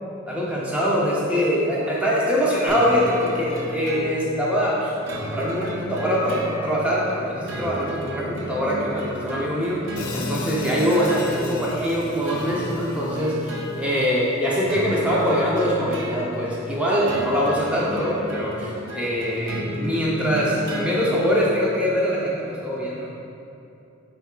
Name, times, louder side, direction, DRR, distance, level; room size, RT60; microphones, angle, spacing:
voice 1, 0.3-9.8 10.1-23.1, equal, 5° right, -6 dB, 0.4 m, -23 dB
sound 1, 2.7-21.9, equal, 65° right, 0.5 m, -33 dB
Hi-hat, 10.0-14.1, left 4 dB, 80° left, 0.3 m, -37 dB
6.4 x 2.4 x 2.2 m, 2.7 s
head